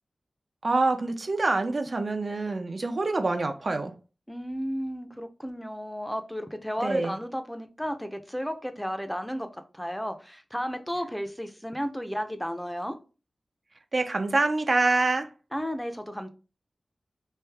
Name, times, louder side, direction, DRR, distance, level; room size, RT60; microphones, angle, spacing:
voice 1, 0.6-4.0 6.8-7.2 13.9-15.3, right 3 dB, 50° right, 0.4 m, -26 dB
voice 2, 4.3-13.0 15.5-16.3, equal, 5° left, 0.5 m, -33 dB
3.2 x 2.6 x 3.3 m
wide cardioid pair, 80°, 0 cm